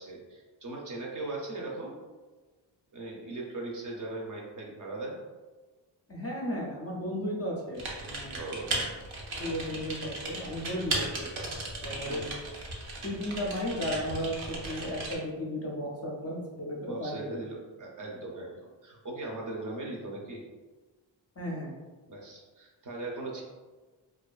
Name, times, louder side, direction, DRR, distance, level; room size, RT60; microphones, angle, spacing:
voice 1, 0.0-2.0 2.9-5.2 8.0-8.7 12.1-12.3 16.8-20.4 22.1-23.4, right 2 dB, 45° right, -2 dB, 0.5 m, -39 dB
voice 2, 6.1-8.4 8.7-8.9 9.4-11.3 11.8-12.3 13.0-17.4 21.4-21.7, equal, 35° left, -3 dB, 0.4 m, -34 dB
Typing, 7.7-15.2, right 2 dB, 85° right, 0.6 m, -36 dB
2.5 x 2.3 x 2.3 m, 1.3 s
wide cardioid pair, 140°, 46 cm